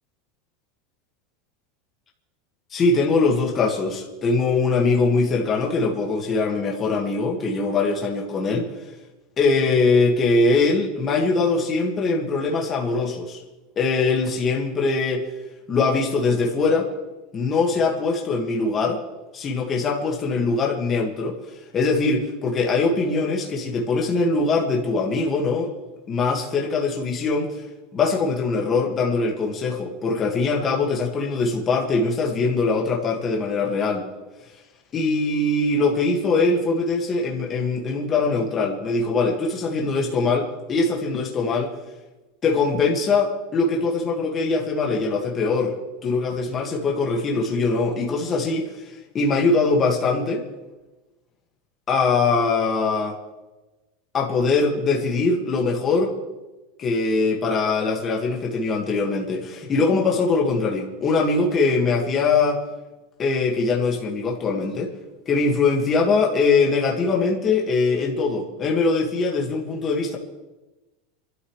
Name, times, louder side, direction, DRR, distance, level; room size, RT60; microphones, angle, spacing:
voice 1, 2.7-8.7 9.4-13.4 13.8-15.2 15.7-16.9 17.3-19.0 19.3-21.4 21.7-25.7 26.1-27.6 27.9-34.1 34.9-41.7 42.4-45.8 46.0-48.7 49.1-50.4 51.9-53.2 54.1-56.1 56.8-62.6 63.2-64.9 65.3-70.2, left 3 dB, 20° left, -1 dB, 1.8 m, -22 dB
27.0 x 12.5 x 3.2 m, 1.1 s
supercardioid pair, 180°, 0 cm